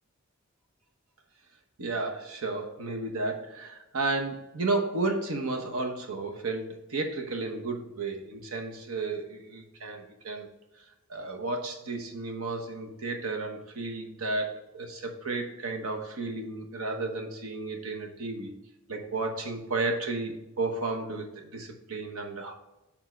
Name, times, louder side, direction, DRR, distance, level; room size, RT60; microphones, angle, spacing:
voice 1, 1.8-10.5 11.1-18.5 18.9-22.5, right 3 dB, 80° right, 3 dB, 1.0 m, -33 dB
7.1 x 3.6 x 4.5 m, 0.97 s
head